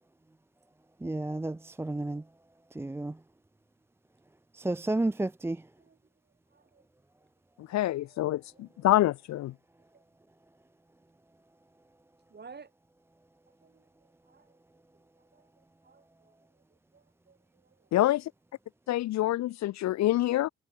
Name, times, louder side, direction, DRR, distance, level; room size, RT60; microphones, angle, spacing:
voice 1, 1.0-2.3 2.7-3.2 4.5-5.7, right 2 dB, 10° right, 0.5 m, -31 dB
voice 2, 6.5-6.8 7.6-8.6 9.9-10.0 12.3-12.7 13.6-14.6 15.3-15.5 15.8-16.6 16.9-17.9, right 5 dB, 35° right, 3.4 m, -55 dB
voice 3, 7.7-9.5 17.9-18.2 18.9-20.5, left 14 dB, 65° left, 0.5 m, -26 dB
cardioid pair, 90°, 30 cm